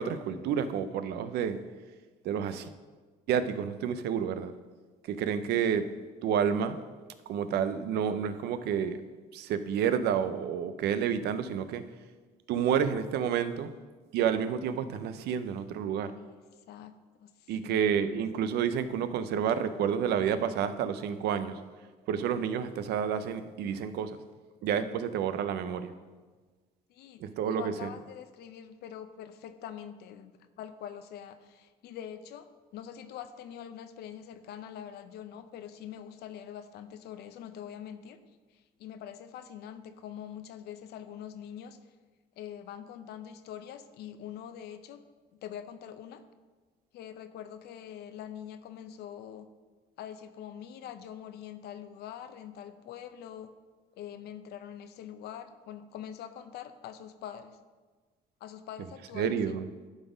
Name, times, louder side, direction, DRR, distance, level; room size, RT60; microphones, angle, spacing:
voice 1, 0.0-1.6 2.2-2.7 3.3-4.5 5.0-5.9 6.2-6.8 7.3-9.0 9.3-11.8 12.5-13.7 14.1-16.1 17.5-21.6 22.1-24.2 24.6-25.9 27.2-27.9 59.1-59.7, right 8 dB, 75° right, 11 dB, 0.6 m, -29 dB
voice 2, 17.2-17.8 26.9-38.2 38.5-41.8 42.4-45.0 45.4-46.2 46.9-49.5 50.0-53.5 54.0-57.6 58.4-59.4, left 9 dB, 75° left, 10 dB, 0.7 m, -44 dB
11.5 x 4.0 x 5.1 m, 1.4 s
cardioid pair, 110°, 17 cm